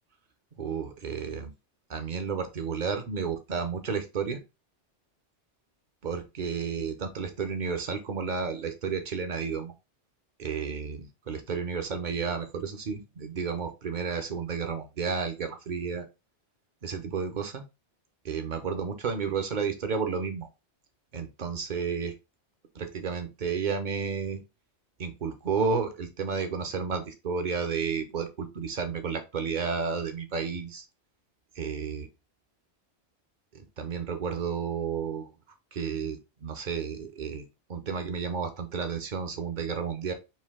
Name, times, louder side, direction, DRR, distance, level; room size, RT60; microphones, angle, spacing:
voice 1, 0.6-1.5 1.9-4.4 6.0-9.7 10.4-16.0 16.8-17.6 18.3-20.5 21.1-22.1 22.7-24.4 25.0-30.8 31.5-32.1 33.5-35.3 35.7-37.4 37.7-40.1, right 5 dB, 45° right, 7 dB, 0.8 m, -32 dB
4.5 x 2.7 x 3.6 m, 0.26 s
omnidirectional pair, 1.2 m